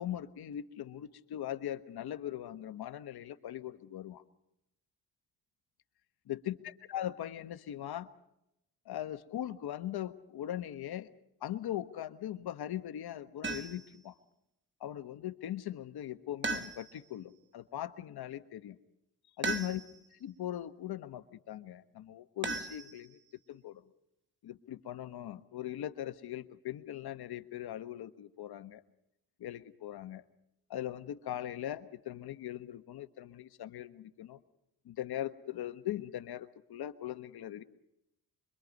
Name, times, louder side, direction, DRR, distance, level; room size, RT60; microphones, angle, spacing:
voice 1, 0.0-4.2 6.3-8.1 8.8-11.1 11.4-14.1 14.8-18.8 19.4-19.8 20.2-23.2 23.5-23.8 24.4-28.8 29.4-30.2 30.7-34.4 34.8-37.6, left 12 dB, 65° left, 10 dB, 1.4 m, -40 dB
sound 1, 13.4-14.0 16.4-17.2 19.4-20.1 22.4-23.3, right 3 dB, 30° right, 1.6 m, -37 dB
25.5 x 23.0 x 5.4 m, 0.83 s
supercardioid pair, 70°, 40 cm